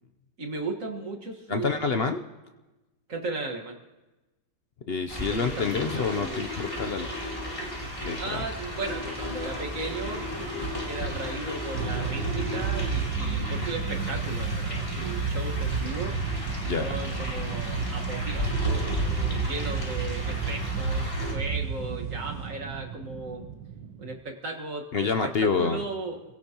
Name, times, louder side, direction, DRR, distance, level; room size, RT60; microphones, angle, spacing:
voice 1, 0.4-2.1 3.1-3.8 5.2-6.4 8.2-16.4 16.8-23.4 24.0-26.2, right 3 dB, 50° right, 1 dB, 2.0 m, -36 dB
voice 2, 1.5-2.2 4.9-7.1 8.0-8.4 16.6-16.9 24.9-25.8, left 5 dB, 60° left, 6 dB, 0.6 m, -27 dB
sound 1, 5.1-21.3, equal, 15° left, 3.2 m, -35 dB
sound 2, 7.7-22.5, right 1 dB, 75° left, 7.4 m, -40 dB
sound 3, 11.7-24.2, right 5 dB, 90° right, 1.6 m, -31 dB
29.0 x 17.0 x 3.0 m, 1.1 s
omnidirectional pair, 1.9 m